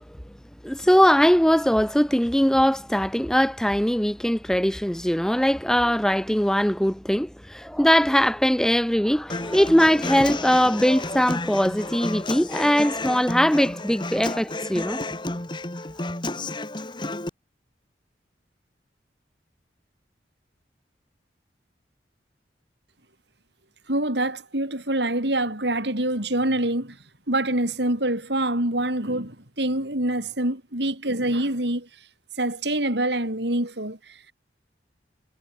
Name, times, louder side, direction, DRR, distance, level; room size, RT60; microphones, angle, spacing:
voice 1, 0.6-15.0 15.3-15.4, equal, 5° left, 0.6 m, -21 dB
Human voice / Acoustic guitar, 9.3-17.3, left 2 dB, 25° left, 1.9 m, -31 dB
voice 2, 23.9-27.0 27.3-31.9 32.4-34.3, right 1 dB, 75° right, 6.4 m, -25 dB
head